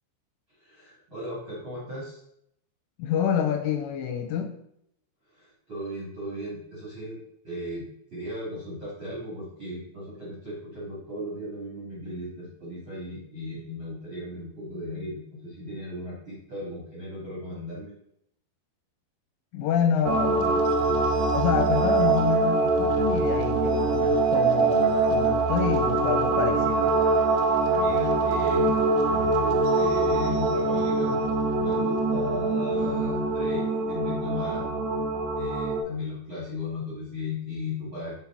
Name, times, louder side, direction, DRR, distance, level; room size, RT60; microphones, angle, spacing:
voice 1, 0.6-2.2 5.3-7.2 7.4-7.8 8.1-17.9 27.7-31.2 31.5-34.7 35.3-38.1, left 1 dB, 55° right, -7 dB, 1.5 m, -36 dB
voice 2, 3.0-4.6 19.5-20.7 21.3-26.9, left 8 dB, 85° left, 5 dB, 2.8 m, -27 dB
sound 1, 20.1-35.8, right 3 dB, 80° right, 2.6 m, -24 dB
7.2 x 4.0 x 4.2 m, 0.73 s
omnidirectional pair, 5.2 m